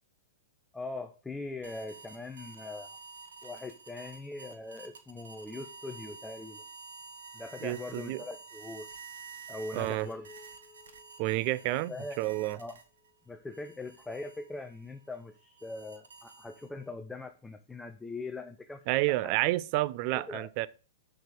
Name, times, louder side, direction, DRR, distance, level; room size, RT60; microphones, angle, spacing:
voice 1, 0.7-3.0 3.4-6.6 7.3-8.9 9.5-10.3 11.6-12.8 13.3-19.4 20.1-20.5, left 3 dB, 10° left, 0.7 m, -41 dB
sound 1, 1.6-13.1 13.5-16.9, right 4 dB, 70° right, 1.5 m, -50 dB
voice 2, 7.6-8.2 9.7-10.1 11.2-12.6 18.9-20.7, right 18 dB, 45° right, 0.5 m, -30 dB
Piano, 10.0-13.2, left 4 dB, 25° left, 3.7 m, -57 dB
6.5 x 6.5 x 4.8 m
figure-of-eight pair, 105°, 0 cm